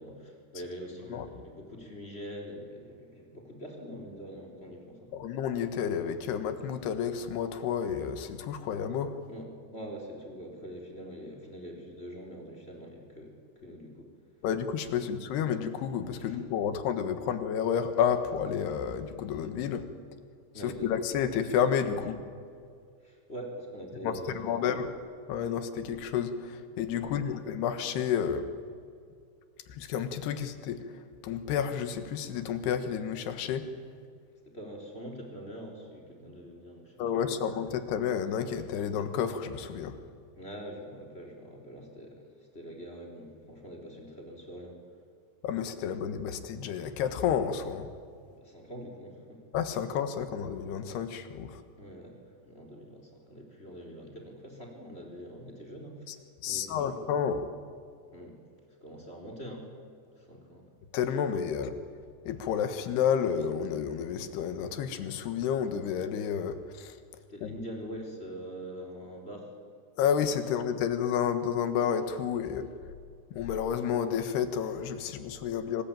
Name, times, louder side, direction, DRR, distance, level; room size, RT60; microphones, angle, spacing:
voice 1, 0.0-5.1 9.3-9.5 9.7-14.1 15.0-15.1 16.2-16.4 20.5-20.9 23.0-24.7 27.0-27.3 34.5-37.4 40.4-44.8 48.3-49.4 51.8-57.0 58.1-58.4 58.8-59.7 60.2-60.6 67.3-69.5, equal, 15° left, 1 dB, 3.8 m, -44 dB
voice 2, 5.1-9.1 14.4-19.9 20.6-22.2 24.0-24.9 25.3-28.5 29.7-30.8 31.2-33.7 37.0-40.0 45.4-47.9 49.5-51.6 56.1-56.2 56.4-57.5 60.9-61.8 62.3-66.9 67.4-67.5 70.0-72.7 73.3-75.8, left 8 dB, 90° left, 9 dB, 3.5 m, -30 dB
25.0 x 19.5 x 8.9 m, 2.2 s
omnidirectional pair, 4.5 m